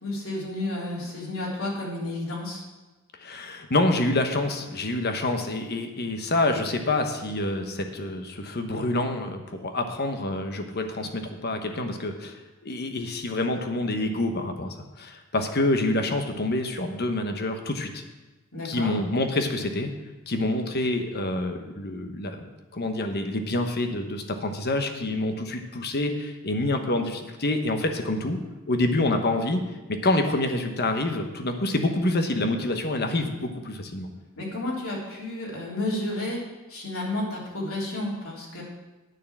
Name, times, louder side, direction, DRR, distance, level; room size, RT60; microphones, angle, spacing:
voice 1, 0.0-2.6 18.5-18.9 34.4-36.4 36.7-38.6, left 1 dB, 75° left, -4 dB, 3.3 m, -31 dB
voice 2, 3.2-12.4 12.6-18.0 18.6-19.9 20.3-22.4 22.7-28.4 28.7-29.6 29.9-34.1, left 2 dB, 50° left, 5 dB, 1.1 m, -27 dB
9.3 x 6.5 x 7.2 m, 1.1 s
head